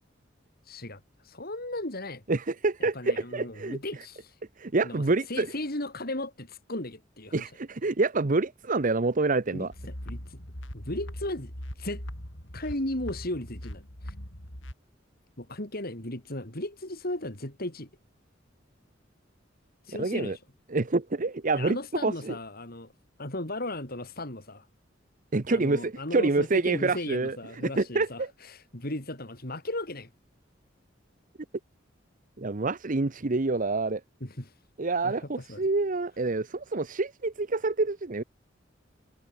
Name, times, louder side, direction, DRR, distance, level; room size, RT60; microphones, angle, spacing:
voice 1, 0.6-2.2 2.8-4.4 4.8-7.5 9.5-10.4 10.7-12.1 12.5-14.1 15.4-17.9 19.8-20.4 21.5-22.9 23.2-24.7 25.5-30.1 34.2-34.5 35.0-35.7, left 1 dB, 50° left, 5.5 m, -36 dB
voice 2, 2.3-3.8 4.6-5.5 7.3-9.7 19.9-20.4 20.7-21.8 22.0-22.3 25.3-28.3 32.4-34.0 34.8-38.2, right 3 dB, 45° right, 0.9 m, -27 dB
sound 1, 9.7-14.7, equal, 75° left, 7.8 m, -40 dB
head